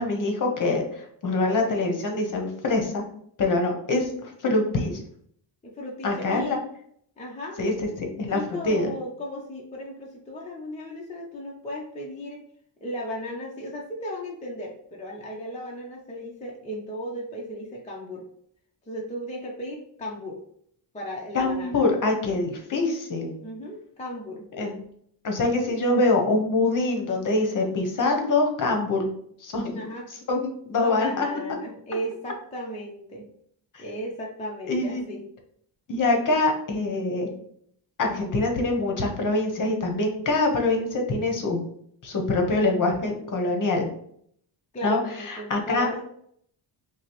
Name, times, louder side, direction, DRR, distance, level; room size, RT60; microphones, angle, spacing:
voice 1, 0.0-3.0 3.4-5.0 6.0-6.6 7.6-7.7 8.0-8.9 21.3-23.4 24.6-24.8 25.2-29.1 29.4-29.8 30.3-31.3 33.7-33.8 34.7-35.0 35.9-37.3 38.0-41.6 42.0-43.9 44.8-45.9, left 2 dB, 45° left, 2 dB, 0.8 m, -24 dB
voice 2, 5.6-6.6 7.2-7.6 8.3-12.4 12.8-18.3 18.9-20.4 20.9-21.8 23.4-24.5 29.7-30.1 30.6-33.3 33.8-35.2 44.7-46.0, equal, 15° left, -2 dB, 0.4 m, -35 dB
5.4 x 2.0 x 2.9 m, 0.66 s
wide cardioid pair, 170°, 46 cm